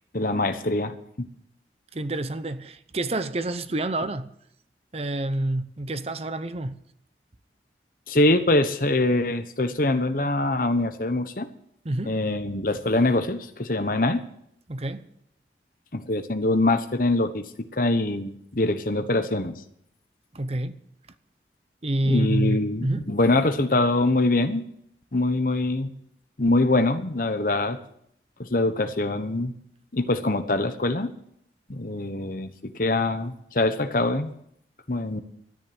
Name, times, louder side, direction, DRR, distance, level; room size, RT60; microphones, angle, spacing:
voice 1, 0.1-1.3 8.1-11.5 12.0-14.2 15.9-19.6 22.0-24.6 25.1-25.9 26.4-27.8 28.4-29.5 29.9-31.1 31.7-34.3 34.9-35.2, left 2 dB, 50° left, 1.2 m, -24 dB
voice 2, 1.9-4.3 4.9-6.8 11.8-12.2 14.7-15.1 20.3-20.8 21.8-23.0, right 1 dB, 35° right, 0.8 m, -28 dB
13.0 x 10.0 x 9.0 m
head